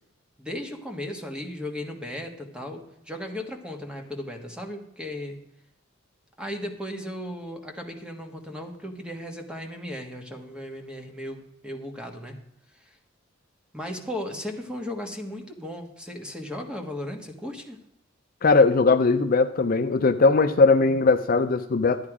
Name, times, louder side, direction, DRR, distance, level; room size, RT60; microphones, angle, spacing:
voice 1, 0.4-5.4 6.4-12.4 12.8-12.9 13.7-17.8, left 1 dB, 5° right, 3 dB, 1.4 m, -36 dB
voice 2, 18.4-22.0, left 3 dB, 45° left, 8 dB, 0.5 m, -19 dB
12.0 x 9.6 x 4.9 m, 0.83 s
head